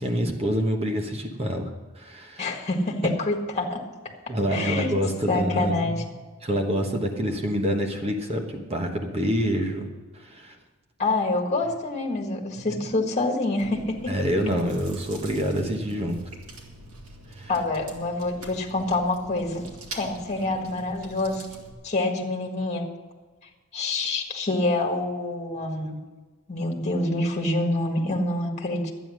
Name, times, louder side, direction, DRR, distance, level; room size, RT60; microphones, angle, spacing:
voice 1, 0.0-1.7 1.9-2.5 4.3-6.1 6.4-9.9 10.1-10.6 12.6-12.9 14.1-16.2 17.3-17.5, equal, 30° right, 3 dB, 1.2 m, -27 dB
voice 2, 2.4-3.8 4.5-4.9 5.3-6.0 11.0-14.3 17.5-19.6 19.9-21.4 21.8-22.8 23.7-26.0 26.5-28.9, left 2 dB, 35° left, 1 dB, 1.7 m, -26 dB
Chewing mastication, 13.6-21.7, right 2 dB, 80° right, 2.2 m, -44 dB
12.0 x 9.2 x 6.4 m, 1.3 s
head